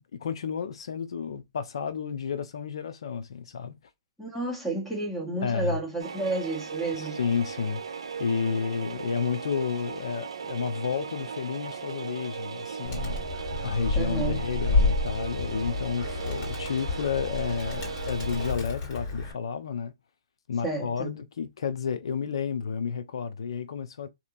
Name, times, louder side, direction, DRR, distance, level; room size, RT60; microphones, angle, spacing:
voice 1, 0.0-3.8 5.4-5.8 6.9-7.9 8.2-19.9 20.5-24.1, left 6 dB, 75° left, 0.6 m, -31 dB
voice 2, 4.2-7.2 13.9-14.4 20.6-21.1, right 2 dB, 5° left, 1.3 m, -31 dB
sound 1, 6.0-18.5, right 5 dB, 85° right, 0.6 m, -37 dB
Animal, 12.8-19.3, left 3 dB, 40° left, 1.9 m, -30 dB
2.8 x 2.6 x 2.4 m
hypercardioid pair, 140°, 3 cm